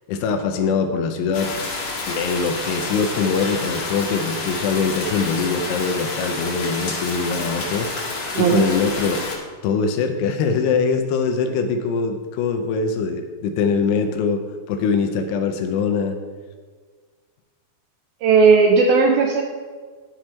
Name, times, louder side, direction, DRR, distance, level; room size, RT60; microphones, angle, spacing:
voice 1, 0.1-1.5 2.1-7.9 8.4-9.2 9.6-16.2, left 5 dB, 80° left, 6 dB, 2.7 m, -22 dB
sound 1, 1.3-9.4, left 3 dB, 45° left, 2.4 m, -29 dB
voice 2, 18.2-19.4, right 5 dB, 80° right, 1 dB, 2.2 m, -15 dB
11.5 x 6.3 x 4.4 m, 1.5 s
omnidirectional pair, 5.1 m